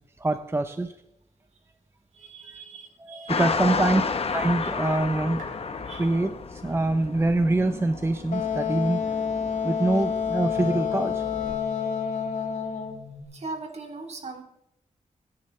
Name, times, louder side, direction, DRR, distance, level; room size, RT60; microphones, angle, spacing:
voice 1, 0.2-0.9 2.5-2.6 3.0-4.0 4.3-5.5 5.9-9.1 9.6-11.3, right 2 dB, 20° right, 8 dB, 0.8 m, -25 dB
voice 2, 2.1-3.9 4.6-4.7 5.8-6.1 9.9-10.0 13.3-14.4, right 3 dB, 55° right, 4 dB, 3.1 m, -39 dB
sound 1, 3.3-11.6, left 5 dB, 50° left, 1.1 m, -32 dB
sound 2, 4.6-13.2, left 3 dB, 85° right, 5.1 m, -47 dB
Wind instrument woodwind instrument, 8.3-13.0, left 7 dB, 70° left, 2.8 m, -28 dB
25.0 x 10.5 x 3.3 m, 0.83 s
wide cardioid pair, 105°, 13 cm